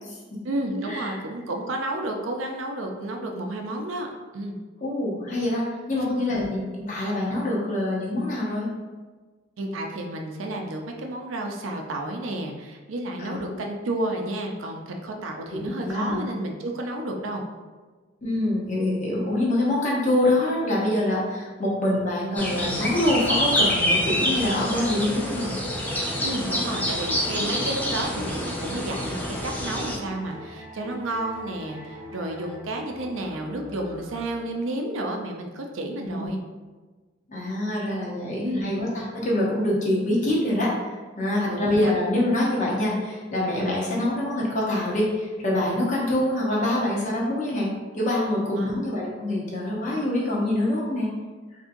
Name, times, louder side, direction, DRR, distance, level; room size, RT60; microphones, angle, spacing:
voice 1, 0.4-4.1 4.3-4.5 6.0-6.5 9.6-17.4 26.2-36.4 38.4-38.7 41.5-41.9 48.6-48.7, right 1 dB, 75° right, 2 dB, 0.5 m, -31 dB
voice 2, 4.8-8.7 13.2-13.4 15.5-16.3 18.2-25.6 36.0-36.3 37.3-51.1, left 1 dB, 40° left, -5 dB, 0.8 m, -25 dB
sound 1, 22.4-30.0, left 1 dB, 10° left, 0.4 m, -27 dB
sound 2, 25.9-34.8, right 1 dB, 50° right, 0.8 m, -44 dB
3.7 x 2.7 x 2.6 m, 1.3 s
head